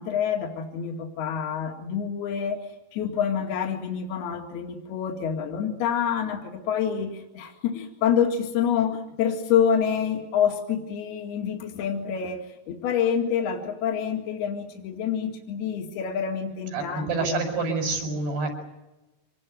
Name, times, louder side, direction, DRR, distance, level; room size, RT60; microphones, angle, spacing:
voice 1, 0.0-2.6 2.9-17.4, left 8 dB, 75° left, 2 dB, 4.1 m, -27 dB
voice 2, 16.7-18.5, right 3 dB, 80° right, 5 dB, 8.5 m, -27 dB
26.5 x 20.0 x 9.3 m, 1.0 s
omnidirectional pair, 4.6 m